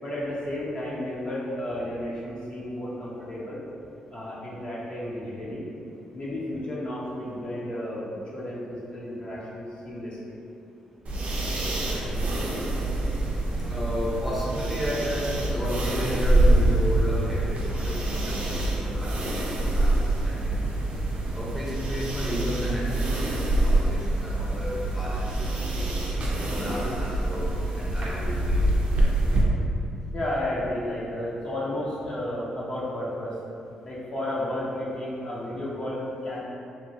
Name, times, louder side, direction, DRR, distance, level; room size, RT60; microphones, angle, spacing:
voice 1, 0.0-3.6 4.1-5.7 6.1-10.4 30.1-33.4 33.8-36.4, left 1 dB, 40° left, -7 dB, 0.7 m, -32 dB
sound 1, 11.0-29.4, right 1 dB, 55° right, 0.6 m, -25 dB
voice 2, 11.8-12.1 13.7-20.7 21.3-25.5 25.7-25.9 26.4-28.9, equal, ahead, -7 dB, 0.9 m, -33 dB
3.0 x 2.7 x 2.7 m, 2.6 s
supercardioid pair, 60°, 3 cm